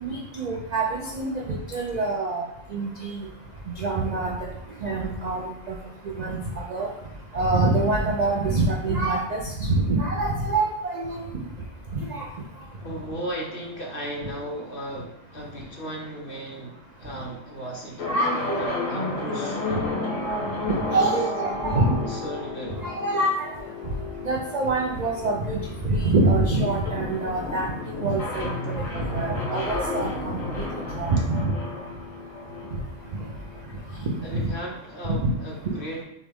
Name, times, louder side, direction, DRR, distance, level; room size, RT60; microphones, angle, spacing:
voice 1, 0.0-1.4 1.7-2.4 2.7-3.3 3.8-4.3 4.8-5.8 6.2-6.4 6.7-6.9 7.3-11.4 11.9-12.2 18.1-18.7 19.7-19.8 20.7-22.0 22.8-23.5 24.3-25.6 25.8-30.3 31.0-31.5 34.3-34.5 35.0-35.3, right 2 dB, 65° right, -1 dB, 0.4 m, -25 dB
voice 2, 12.8-18.1 18.5-19.9 20.9-21.1 22.1-22.8 34.2-36.0, equal, 45° left, -2 dB, 1.1 m, -36 dB
sound 1, 18.0-33.8, left 2 dB, 75° left, 1.3 m, -32 dB
6.3 x 2.4 x 3.5 m, 0.81 s
omnidirectional pair, 1.4 m